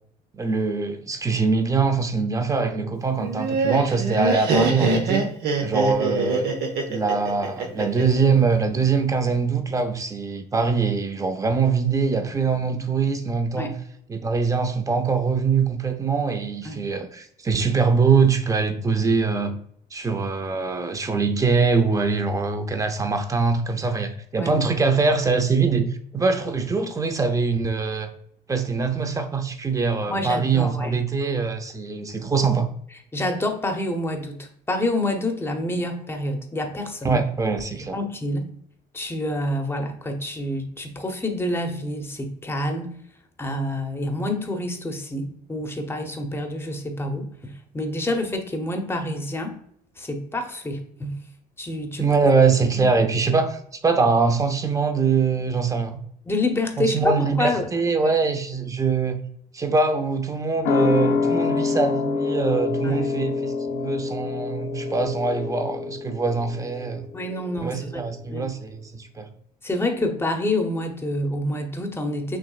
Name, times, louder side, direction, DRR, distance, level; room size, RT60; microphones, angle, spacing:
voice 1, 0.3-5.2 5.6-6.5 6.9-13.8 14.1-19.5 19.9-28.1 28.5-32.7 37.0-38.0 52.0-56.0 56.8-59.2 59.5-67.1 67.6-69.3, right 4 dB, 20° right, 7 dB, 0.7 m, -23 dB
Laughter, 3.2-8.2, right 4 dB, 70° right, 0.9 m, -24 dB
voice 2, 30.1-31.0 33.1-37.2 37.8-38.5 38.9-43.0 43.4-49.5 50.0-51.2 51.6-52.1 52.8-52.9 56.3-57.6 62.8-63.1 67.1-68.0 68.3-68.5 69.6-72.4, left 1 dB, 15° left, 5 dB, 0.8 m, -27 dB
sound 1, 60.6-67.7 68.0-68.1, left 4 dB, 75° left, 0.7 m, -26 dB
6.0 x 3.1 x 2.4 m, 0.66 s
cardioid pair, 110°, 17 cm